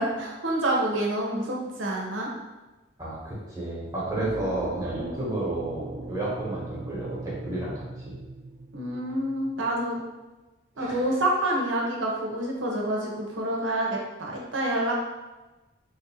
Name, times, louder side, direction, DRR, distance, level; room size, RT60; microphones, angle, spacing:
voice 1, 0.0-2.3 8.7-10.0 10.8-14.9, right 1 dB, 85° right, -2 dB, 0.8 m, -27 dB
voice 2, 3.0-8.1 10.8-11.1, right 2 dB, 20° right, -7 dB, 1.1 m, -32 dB
sound 1, 4.0-9.8, right 2 dB, 40° right, 0.5 m, -39 dB
3.2 x 2.6 x 4.2 m, 1.1 s
head